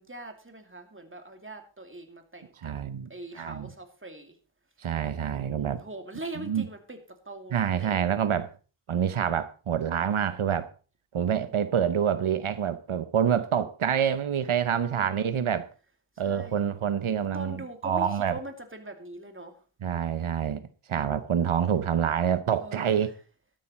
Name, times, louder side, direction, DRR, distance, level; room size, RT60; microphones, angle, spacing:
voice 1, 0.0-2.7 3.1-4.4 5.3-7.0 7.2-8.0 11.3-11.6 14.7-15.3 16.2-16.6 17.2-19.6 22.6-23.1, right 2 dB, 25° right, 2.6 m, -42 dB
voice 2, 2.6-3.1 3.3-3.7 4.8-5.8 6.4-6.7 7.5-8.5 8.9-10.7 11.1-15.7 16.2-18.3 19.8-23.1, right 8 dB, 90° right, 0.9 m, -27 dB
12.5 x 12.0 x 4.3 m
wide cardioid pair, 60°, 47 cm